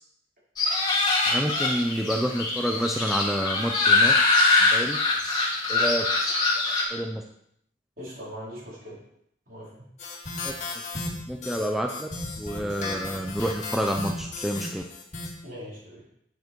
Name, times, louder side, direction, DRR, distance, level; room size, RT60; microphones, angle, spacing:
sound 1, 0.6-6.8, left 3 dB, 25° left, 2.2 m, -23 dB
voice 1, 1.3-4.1 4.6-5.0 5.7-6.1 6.9-7.2 11.3-12.1 12.4-14.9, equal, ahead, 2 dB, 0.6 m, -28 dB
voice 2, 8.0-9.0 9.5-9.7 15.4-16.0, equal, 50° right, -6 dB, 4.5 m, -40 dB
sound 2, 10.0-15.3, left 2 dB, 40° left, 2.1 m, -34 dB
9.5 x 7.9 x 4.6 m, 0.73 s
head